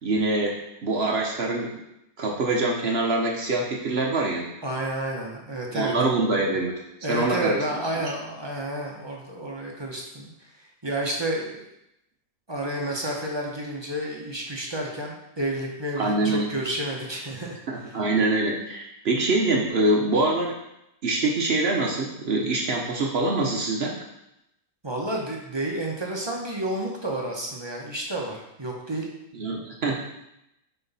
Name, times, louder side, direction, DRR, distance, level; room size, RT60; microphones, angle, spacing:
voice 1, 0.0-1.8 2.2-4.5 5.7-6.8 7.1-7.6 16.0-16.5 17.7-20.5 21.0-23.9 29.4-30.0, right 2 dB, 50° right, 0 dB, 0.8 m, -24 dB
voice 2, 4.6-5.9 7.0-11.7 12.5-18.0 24.8-29.1, right 1 dB, 30° right, -2 dB, 0.4 m, -31 dB
5.9 x 4.5 x 4.1 m, 0.84 s
omnidirectional pair, 1.8 m